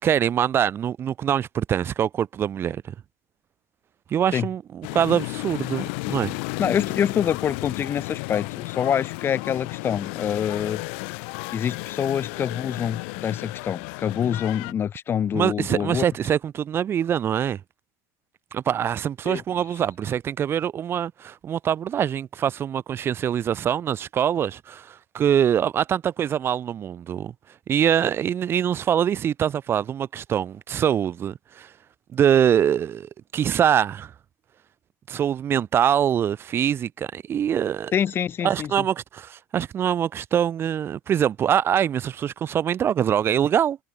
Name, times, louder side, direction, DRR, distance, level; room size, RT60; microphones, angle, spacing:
voice 1, 0.0-2.9 4.1-6.4 15.3-17.6 18.5-27.3 27.7-31.7 32.1-34.1 35.1-37.9 38.4-43.8, right 9 dB, 35° right, 2.6 m, -24 dB
sound 1, 4.8-14.7, left 33 dB, 75° left, 6.5 m, -33 dB
voice 2, 6.6-10.8 11.5-16.0 19.2-19.4 37.9-38.7, left 8 dB, 35° left, 3.4 m, -26 dB
supercardioid pair, 110°, 7 cm